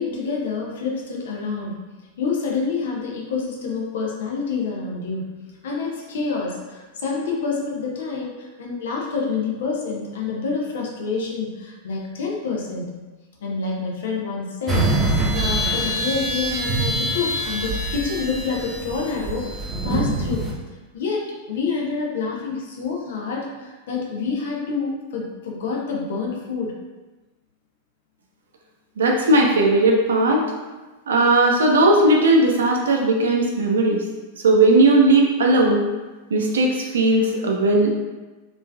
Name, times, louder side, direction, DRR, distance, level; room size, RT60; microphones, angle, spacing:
voice 1, 0.0-1.8 2.2-5.3 5.6-12.9 13.4-14.9 15.3-20.5 20.9-26.7, left 4 dB, 65° left, -2 dB, 0.6 m, -27 dB
sound 1, 14.7-20.5, right 1 dB, 20° right, 0.7 m, -24 dB
voice 2, 29.0-30.4 31.1-34.0 34.4-35.8 36.3-37.9, right 2 dB, 70° right, 1 dB, 0.5 m, -17 dB
3.1 x 2.5 x 2.2 m, 1.2 s
figure-of-eight pair, 95°, 0 cm